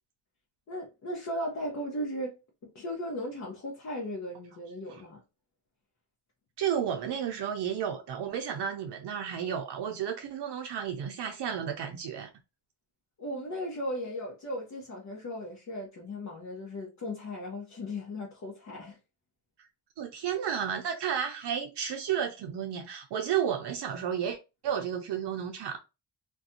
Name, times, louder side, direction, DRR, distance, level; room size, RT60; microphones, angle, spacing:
voice 1, 0.7-2.4 2.6-5.2 13.2-19.0, left 1 dB, 40° left, 0.8 m, -37 dB
voice 2, 6.6-12.3 20.0-24.4 24.6-25.8, right 8 dB, 70° right, 0.6 m, -32 dB
2.5 x 2.2 x 2.6 m
cardioid pair, 115°, 43 cm